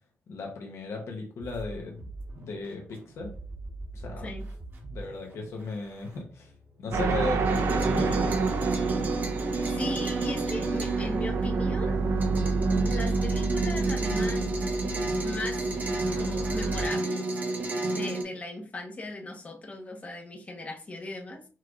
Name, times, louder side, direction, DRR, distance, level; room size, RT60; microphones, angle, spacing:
voice 1, 0.3-2.0 2.4-3.3 3.9-4.3 4.9-6.5 6.8-8.5, left 3 dB, 75° left, 1 dB, 1.0 m, -36 dB
sound 1, 1.4-11.1, right 2 dB, 55° right, 1.4 m, -46 dB
sound 2, 6.9-16.9, right 4 dB, 70° right, 0.6 m, -29 dB
sound 3, 7.4-18.2, right 2 dB, 40° right, 0.8 m, -31 dB
voice 2, 9.6-12.0 12.8-14.5 15.2-15.6 16.2-17.3 17.9-21.4, left 2 dB, 30° left, 3 dB, 0.9 m, -37 dB
5.7 x 3.1 x 2.5 m, 0.40 s
wide cardioid pair, 140°, 5 cm